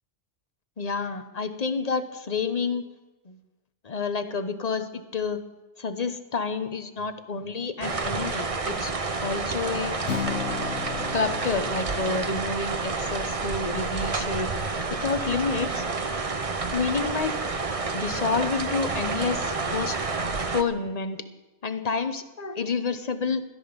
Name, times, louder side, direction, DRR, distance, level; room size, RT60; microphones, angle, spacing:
voice 1, 0.8-2.8 3.3-3.4 3.8-5.4 5.8-8.9 9.2-10.0 11.1-14.5 14.9-15.8 16.7-17.3 17.9-20.0 20.5-21.2 21.6-23.4, left 4 dB, 35° left, 10 dB, 1.0 m, -29 dB
sound 1, 7.8-20.6, right 4 dB, 30° right, 0.9 m, -29 dB
Acoustic guitar, 10.1-14.3, left 8 dB, 85° left, 1.3 m, -36 dB
17.5 x 13.0 x 5.2 m, 1.1 s
omnidirectional pair, 1.3 m